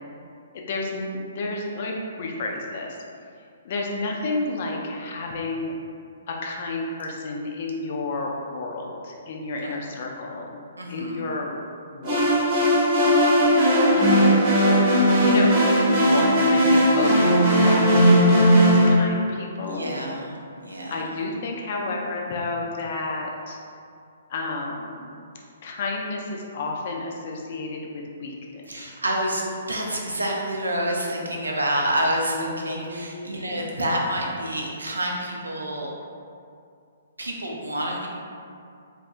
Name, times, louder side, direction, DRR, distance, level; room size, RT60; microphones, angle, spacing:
voice 1, 0.5-3.0 3.6-5.7 6.3-10.6 10.9-11.6 11.9-12.2 12.5-12.7 13.9-14.2 15.2-20.0 20.9-23.6 24.3-25.1 25.6-28.9 32.2-33.6, left 2 dB, 45° left, -1 dB, 0.4 m, -31 dB
voice 2, 10.8-11.3 19.7-20.3 20.6-21.0 28.7-35.9 37.2-38.1, right 1 dB, 80° right, -2 dB, 0.4 m, -28 dB
sound 1, 12.0-18.9, equal, 35° right, 0.8 m, -17 dB
2.7 x 2.2 x 2.4 m, 2.4 s
figure-of-eight pair, 125°, 0 cm